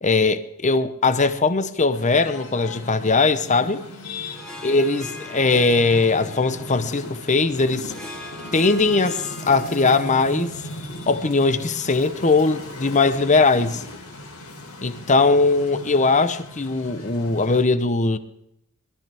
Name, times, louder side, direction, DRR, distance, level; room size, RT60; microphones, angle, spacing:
voice 1, 0.0-3.8 4.6-7.9 8.5-10.5 11.1-13.8 14.8-18.2, left 3 dB, 35° left, 0.9 m, -20 dB
sound 1, 1.9-17.6, left 1 dB, 80° left, 3.3 m, -38 dB
Harp, 4.3-12.9, left 1 dB, 5° left, 2.8 m, -42 dB
21.5 x 13.5 x 3.5 m
head